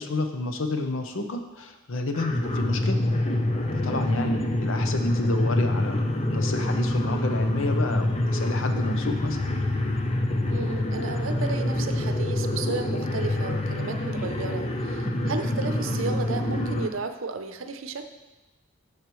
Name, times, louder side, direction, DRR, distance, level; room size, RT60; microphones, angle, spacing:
voice 1, 0.0-3.0 3.7-6.0 6.3-9.5, left 2 dB, 75° left, 6 dB, 0.8 m, -30 dB
sound 1, 2.1-16.9, left 1 dB, 30° left, 0.6 m, -26 dB
voice 2, 10.5-18.1, right 4 dB, 80° right, 8 dB, 0.6 m, -33 dB
13.5 x 4.9 x 3.1 m, 1.1 s
head